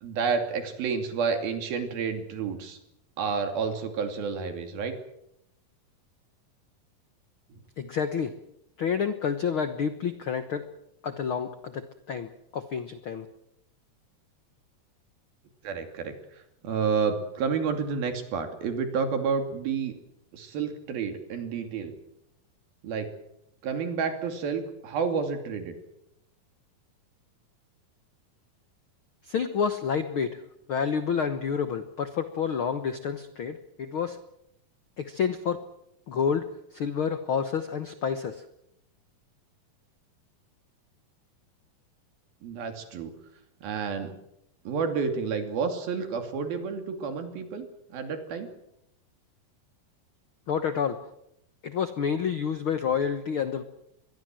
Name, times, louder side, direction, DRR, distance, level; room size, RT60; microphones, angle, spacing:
voice 1, 0.0-2.8 3.2-4.9 15.6-16.1 16.6-20.0 20.3-21.9 22.8-23.1 23.6-25.8 42.4-43.1 43.6-44.1 44.6-48.5, right 5 dB, 85° right, 6 dB, 4.6 m, -30 dB
voice 2, 7.8-8.4 8.8-10.7 11.0-13.3 29.2-30.4 30.7-34.2 35.0-35.6 36.1-36.5 36.7-38.4 50.5-51.0 51.6-53.6, left 7 dB, 70° left, 10 dB, 1.2 m, -29 dB
24.5 x 22.0 x 7.7 m, 0.81 s
omnidirectional pair, 4.2 m